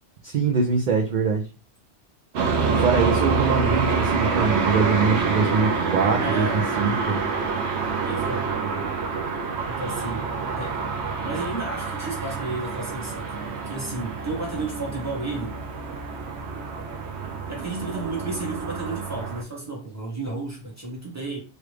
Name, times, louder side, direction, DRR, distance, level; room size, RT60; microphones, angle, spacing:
voice 1, 0.2-1.5 2.8-6.5 6.8-7.2, right 5 dB, 55° right, 0.6 m, -23 dB
sound 1, 2.3-19.4, right 5 dB, 75° right, 0.9 m, -27 dB
voice 2, 6.2-6.7 8.0-8.5 9.7-10.3 10.6-10.8 11.2-15.6 17.5-21.4, right 2 dB, 15° right, 1.2 m, -32 dB
3.1 x 2.4 x 3.3 m
omnidirectional pair, 1.2 m